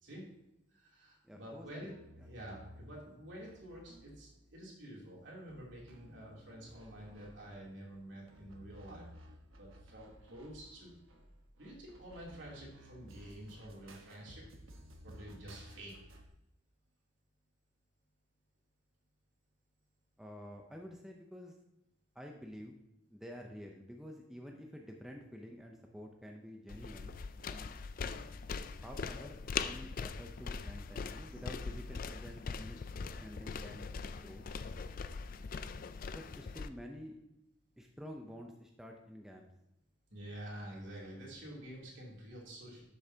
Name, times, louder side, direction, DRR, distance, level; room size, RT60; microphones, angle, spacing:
voice 1, 0.7-1.9 2.2-9.1 9.6-10.9 11.6-14.4 15.0-15.9 40.1-42.8, right 1 dB, 65° right, -3 dB, 3.0 m, -49 dB
voice 2, 1.2-2.3 20.2-21.6 22.1-22.8 23.1-27.2 27.5-27.7 28.7-34.5 36.1-37.2 37.8-39.5, equal, ahead, 1 dB, 0.6 m, -50 dB
sound 1, 1.8-4.7 5.5-16.3, equal, 90° right, 1.2 m, -57 dB
sound 2, 26.7-36.7, left 5 dB, 45° left, 0.3 m, -41 dB
12.0 x 6.8 x 2.8 m, 0.86 s
head